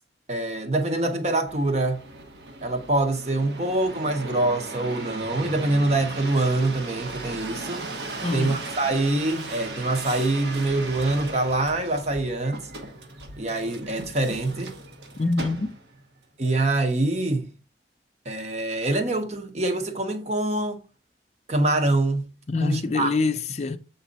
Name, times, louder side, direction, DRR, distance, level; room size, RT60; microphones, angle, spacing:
voice 1, 0.3-2.0 2.6-7.9 8.3-12.7 13.4-14.7 16.4-17.5 18.2-20.8 21.5-22.3 22.6-23.1, right 2 dB, 35° right, 0.9 m, -25 dB
sound 1, 1.5-16.0 16.6-17.1, right 2 dB, 70° right, 1.1 m, -37 dB
voice 2, 8.2-8.6 15.2-15.7 22.5-23.8, left 3 dB, 35° left, 0.4 m, -25 dB
7.3 x 4.0 x 4.0 m
head